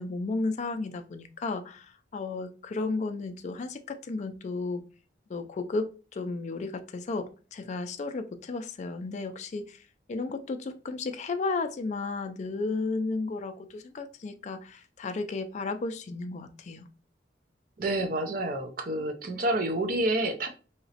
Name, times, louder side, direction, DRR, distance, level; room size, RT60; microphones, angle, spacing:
voice 1, 0.0-4.8 5.3-9.8 10.1-16.9, left 3 dB, 40° left, 0.3 m, -33 dB
voice 2, 17.8-20.5, right 1 dB, 50° right, 0.5 m, -28 dB
3.0 x 2.8 x 2.8 m
head